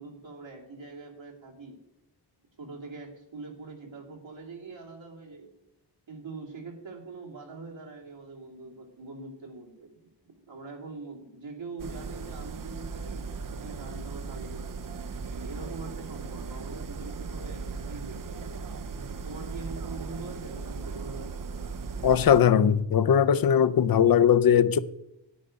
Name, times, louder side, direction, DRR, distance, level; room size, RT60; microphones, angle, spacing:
voice 1, 0.0-1.8 2.6-5.5 6.1-9.9 10.2-13.3 13.5-14.8 15.3-18.6 19.2-21.4, right 3 dB, 80° right, 2.8 m, -43 dB
sound 1, 11.8-22.4, right 4 dB, 45° right, 0.6 m, -37 dB
voice 2, 22.0-24.8, left 8 dB, 55° left, 0.5 m, -20 dB
10.5 x 9.4 x 5.2 m
wide cardioid pair, 145°, 44 cm